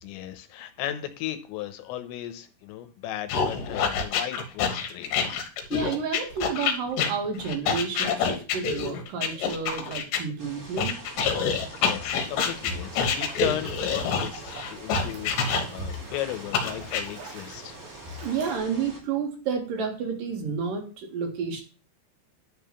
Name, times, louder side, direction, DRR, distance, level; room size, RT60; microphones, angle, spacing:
voice 1, 0.0-5.4 11.8-17.8, left 12 dB, 90° left, 9 dB, 3.2 m, -36 dB
sound 1, 3.3-10.2 10.8-16.0 16.5-17.0, left 6 dB, 75° left, 3.4 m, -27 dB
voice 2, 5.7-11.0 18.2-21.6, right 6 dB, 55° right, 2 dB, 3.1 m, -30 dB
sound 2, 10.4-19.0, right 2 dB, 25° right, 1.9 m, -45 dB
sound 3, 12.2-18.6, right 4 dB, 70° right, 4.6 m, -45 dB
10.5 x 3.8 x 7.2 m, 0.36 s
omnidirectional pair, 5.2 m